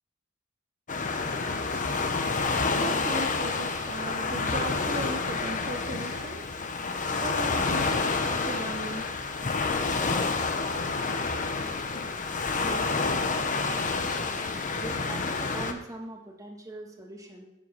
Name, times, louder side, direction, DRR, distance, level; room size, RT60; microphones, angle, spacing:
Waves surf, 0.9-15.7, left 4 dB, 40° left, 0.9 m, -29 dB
voice 1, 2.7-6.5 6.8-8.0 8.3-9.2 12.5-12.9, right 2 dB, 35° right, 3 dB, 0.7 m, -37 dB
voice 2, 14.8-17.4, right 1 dB, 15° right, 1 dB, 1.8 m, -41 dB
9.6 x 7.5 x 5.7 m, 0.87 s
head